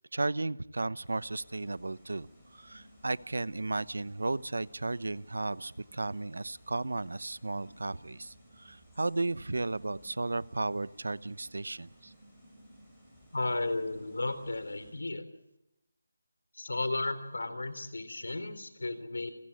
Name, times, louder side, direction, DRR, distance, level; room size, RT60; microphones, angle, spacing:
voice 1, 0.1-2.3 2.5-12.1, right 2 dB, 75° right, 19 dB, 0.9 m, -34 dB
sound 1, 1.0-14.9, equal, 5° left, 6.0 m, -58 dB
voice 2, 13.3-15.2 16.5-19.3, left 2 dB, 80° left, 12 dB, 3.7 m, -34 dB
29.5 x 15.0 x 8.7 m, 0.88 s
figure-of-eight pair, 175°, 0 cm